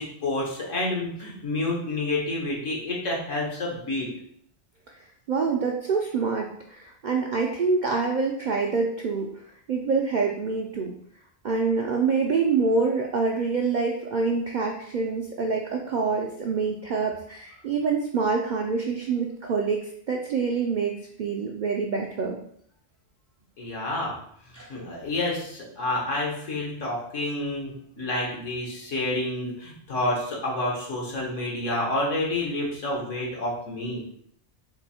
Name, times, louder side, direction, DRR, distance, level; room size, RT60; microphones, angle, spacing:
voice 1, 0.0-4.1 23.6-24.2 24.7-34.0, left 2 dB, 75° left, -2 dB, 1.5 m, -29 dB
voice 2, 5.3-9.3 9.7-10.9 11.4-22.4 24.5-24.7, right 4 dB, 65° right, 0 dB, 0.4 m, -26 dB
3.7 x 2.7 x 4.2 m, 0.66 s
omnidirectional pair, 1.3 m